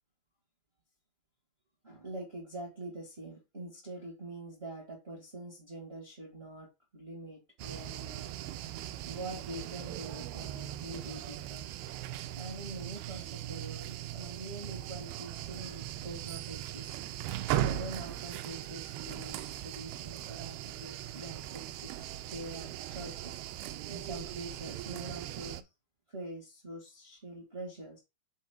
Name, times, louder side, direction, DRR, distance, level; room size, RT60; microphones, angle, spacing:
voice 1, 1.8-8.3 9.0-11.7 12.3-16.9 17.6-23.4 23.9-25.7 26.1-28.0, right 1 dB, 35° right, 0.9 m, -45 dB
sound 1, 7.6-25.6, right 13 dB, 85° right, 2.5 m, -39 dB
6.4 x 4.5 x 4.3 m
omnidirectional pair, 4.4 m